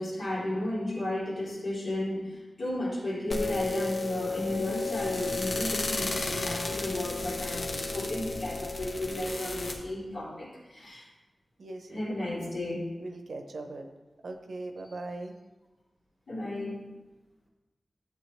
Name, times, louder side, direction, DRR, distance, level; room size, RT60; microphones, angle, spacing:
voice 1, 0.0-11.1 11.9-12.9 14.8-14.9 16.3-16.8, left 1 dB, 90° left, -7 dB, 3.6 m, -33 dB
sound 1, 3.3-9.7, left 3 dB, 65° left, 1.2 m, -33 dB
voice 2, 11.6-12.0 12.5-12.6 13.0-13.9 14.2-15.3, right 2 dB, 90° right, 5 dB, 0.9 m, -40 dB
12.0 x 8.0 x 3.2 m, 1.2 s
wide cardioid pair, 100°, 0 cm